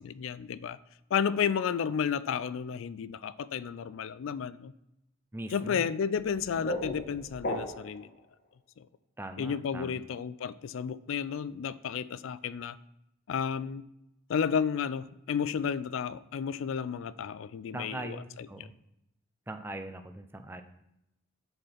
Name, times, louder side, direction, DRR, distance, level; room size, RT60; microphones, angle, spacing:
voice 1, 0.0-0.8 1.1-4.7 5.5-8.1 8.8-8.9 9.4-12.8 13.3-13.8 14.3-18.7, left 7 dB, 70° left, 0.3 m, -32 dB
voice 2, 5.3-5.8 9.2-10.0 17.7-18.7 19.5-20.6, right 1 dB, 10° right, 0.4 m, -41 dB
sound 1, 6.2-8.1, left 1 dB, 50° left, 1.0 m, -36 dB
7.9 x 4.4 x 5.6 m
head